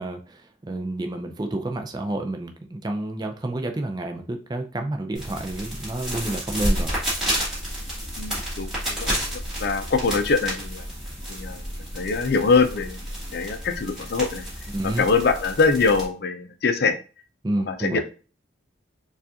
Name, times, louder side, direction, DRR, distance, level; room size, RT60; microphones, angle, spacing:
voice 1, 0.0-6.9 14.7-15.1 17.4-18.0, right 1 dB, 20° right, 5 dB, 0.4 m, -29 dB
sound 1, 5.1-16.0, equal, 5° right, 1.8 m, -30 dB
voice 2, 8.2-10.9 11.3-11.6 11.9-13.0 13.3-14.4 15.0-17.0 17.7-18.0, left 4 dB, 55° left, 7 dB, 0.5 m, -23 dB
4.6 x 2.4 x 2.8 m, 0.36 s
head